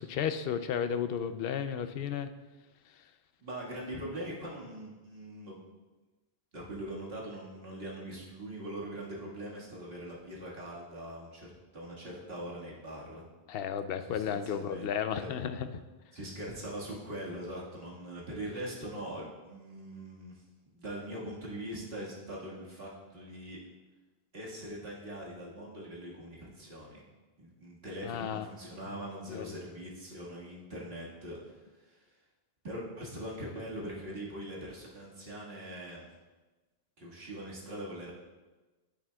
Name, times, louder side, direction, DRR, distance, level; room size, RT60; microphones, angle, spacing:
voice 1, 0.0-2.3 13.5-15.7 28.0-28.4 29.3-29.5, left 8 dB, 70° left, 10 dB, 0.7 m, -33 dB
voice 2, 3.4-5.7 6.5-13.3 14.0-14.9 15.2-15.3 16.1-20.4 20.7-23.6 24.3-27.0 27.4-32.2 32.6-36.1 37.0-38.1, right 1 dB, 70° right, -5 dB, 2.0 m, -42 dB
9.5 x 8.5 x 2.3 m, 1.2 s
omnidirectional pair, 1.0 m